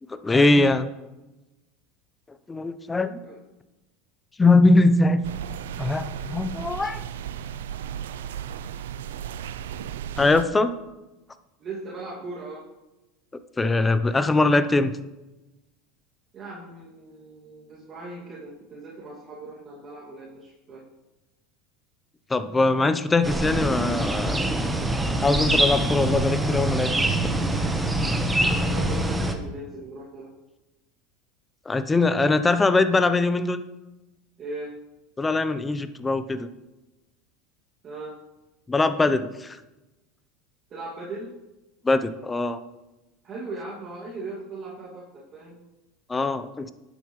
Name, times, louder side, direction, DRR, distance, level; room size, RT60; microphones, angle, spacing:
voice 1, 0.1-0.9 2.5-3.2 4.4-5.2 5.8-7.0 10.2-10.7 13.6-14.9 22.3-24.6 25.2-27.2 31.7-33.6 35.2-36.5 38.7-39.6 41.8-42.6 46.1-46.7, left 2 dB, 15° left, 11 dB, 0.7 m, -22 dB
sound 1, 5.2-10.4, right 9 dB, 90° right, 0.4 m, -35 dB
voice 2, 11.6-12.6 16.3-20.8 28.4-30.3 34.4-34.7 37.8-38.1 40.7-41.3 43.2-45.6, right 2 dB, 35° right, -6 dB, 2.3 m, -38 dB
sound 2, 23.2-29.3, right 1 dB, 10° right, 1.2 m, -24 dB
11.5 x 9.3 x 3.2 m, 1.0 s
supercardioid pair, 105°, 0 cm